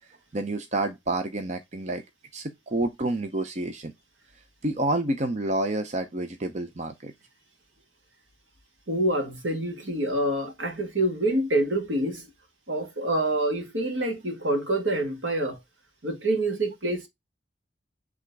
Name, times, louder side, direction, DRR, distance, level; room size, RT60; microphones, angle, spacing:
voice 1, 0.3-2.0 2.3-3.9 4.6-7.1, right 2 dB, 35° right, 0.7 m, -29 dB
voice 2, 8.9-12.3 12.7-15.6 16.0-17.1, right 1 dB, 75° right, 2.0 m, -26 dB
8.1 x 3.7 x 4.7 m
head